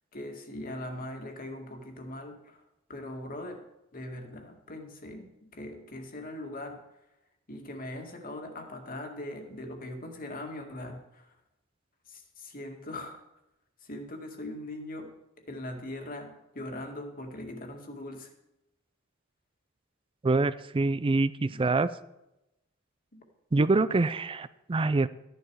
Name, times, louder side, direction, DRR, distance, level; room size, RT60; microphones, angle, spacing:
voice 1, 0.1-2.6 2.9-3.6 3.9-6.8 7.5-11.3 12.1-13.2 13.8-15.1 15.4-18.3 21.5-21.7, left 1 dB, 45° left, 4 dB, 2.0 m, -40 dB
voice 2, 20.2-21.9 23.5-25.1, right 3 dB, 25° right, 15 dB, 0.4 m, -25 dB
13.5 x 10.5 x 4.7 m, 0.91 s
head